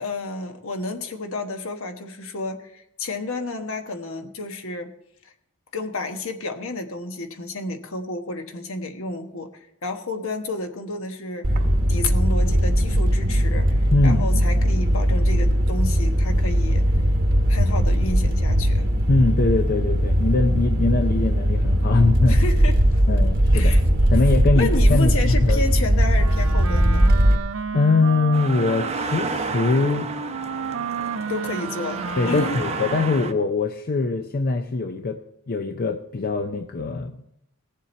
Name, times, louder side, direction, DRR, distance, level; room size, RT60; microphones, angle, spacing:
voice 1, 0.0-4.9 5.7-9.5 9.8-16.9 17.5-18.9 22.3-23.0 23.5-23.8 24.5-27.1 31.3-32.6, left 2 dB, 65° left, 6 dB, 1.2 m, -31 dB
sound 1, 11.4-27.3, equal, 45° right, 1.1 m, -19 dB
voice 2, 13.9-14.7 19.1-22.5 23.1-23.8 24.1-25.6 27.7-30.1 32.2-37.4, left 3 dB, 45° left, 6 dB, 0.5 m, -22 dB
Wind instrument woodwind instrument, 26.1-33.4, right 5 dB, 65° right, 0.5 m, -32 dB
sound 2, 28.3-33.3, right 4 dB, 30° right, 0.8 m, -31 dB
19.0 x 7.4 x 4.2 m, 0.78 s
head